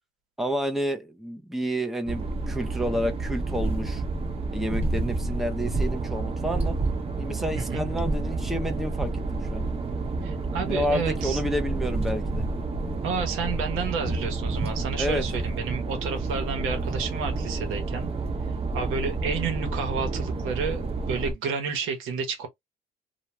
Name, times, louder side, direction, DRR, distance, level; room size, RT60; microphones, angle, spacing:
voice 1, 0.4-4.0 4.5-6.8 7.2-9.6 10.6-12.5 15.0-15.2, equal, ahead, 0.6 m, -30 dB
sound 1, 2.1-21.3, right 3 dB, 30° right, 0.8 m, -29 dB
voice 2, 7.5-7.9 10.2-11.4 13.0-18.1 18.7-22.5, right 5 dB, 80° right, 1.0 m, -31 dB
2.3 x 2.2 x 3.0 m
supercardioid pair, 85°, 20 cm